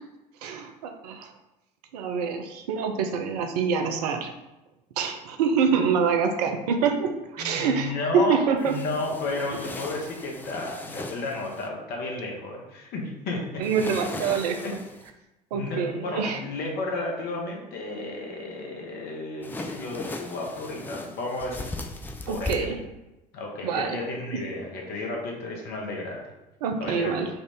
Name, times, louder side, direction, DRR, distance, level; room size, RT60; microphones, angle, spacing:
voice 1, 0.4-1.3 1.9-4.3 5.0-8.7 13.6-14.8 15.5-16.4 22.3-22.8 23.6-24.0 26.6-27.3, right 6 dB, 70° right, 6 dB, 0.5 m, -26 dB
voice 2, 7.4-13.6 14.6-14.7 15.5-21.7 22.3-22.7 23.3-26.2 26.8-27.1, left 2 dB, 50° left, 0 dB, 1.0 m, -32 dB
sound 1, 8.6-11.7 13.6-15.1 19.4-22.5, left 2 dB, 10° left, 0.3 m, -38 dB
3.9 x 2.5 x 3.4 m, 0.99 s
figure-of-eight pair, 60°, 21 cm